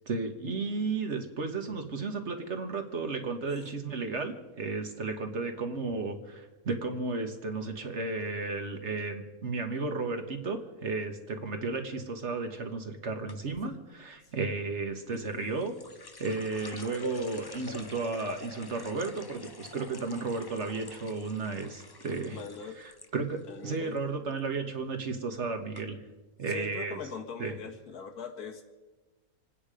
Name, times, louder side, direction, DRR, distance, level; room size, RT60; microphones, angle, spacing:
voice 1, 0.1-15.7 16.2-22.4 22.8-26.0 26.4-27.0 27.4-27.5, right 3 dB, 50° right, 5 dB, 1.8 m, -33 dB
sound 1, 13.3-13.7 15.1-23.1 23.4-24.0 24.3-24.6 25.3-25.4 25.7-25.8, left 2 dB, 30° left, 0.4 m, -45 dB
voice 2, 22.3-22.8 23.5-24.0 26.5-28.6, left 5 dB, 80° left, 5 dB, 2.2 m, -41 dB
27.0 x 9.7 x 5.1 m, 1.2 s
omnidirectional pair, 1.6 m